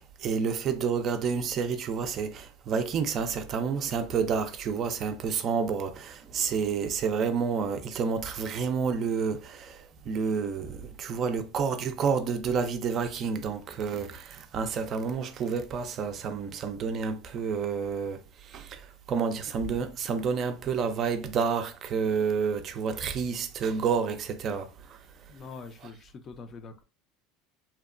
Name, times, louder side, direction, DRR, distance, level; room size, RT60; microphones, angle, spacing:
voice 1, 0.0-25.0, right 6 dB, 45° right, 0.4 m, -29 dB
voice 2, 25.3-26.8, left 4 dB, 40° left, 0.4 m, -44 dB
2.7 x 2.1 x 2.4 m
supercardioid pair, 100°, 0 cm